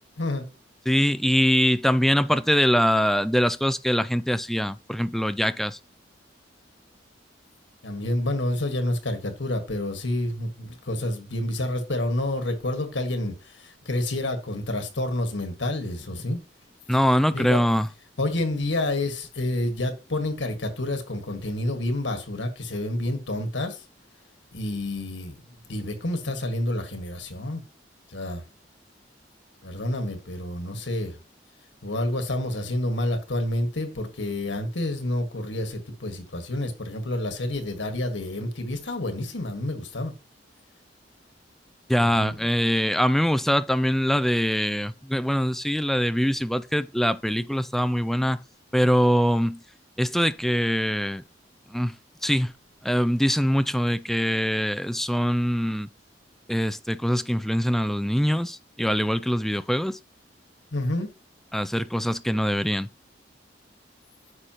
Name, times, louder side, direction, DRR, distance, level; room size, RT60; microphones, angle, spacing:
voice 1, 0.9-5.8 16.9-17.9 41.9-48.4 48.7-49.6 50.0-51.2 51.7-52.0 52.2-52.5 52.8-55.9 56.5-60.0 61.5-62.9, equal, ahead, 0.3 m, -23 dB
voice 2, 7.8-16.4 17.3-17.6 18.2-23.8 24.5-27.6 28.1-28.4 29.6-31.1 31.8-40.1 42.0-42.3 60.7-61.1, left 1 dB, 90° left, 1.6 m, -29 dB
9.8 x 6.5 x 2.9 m
head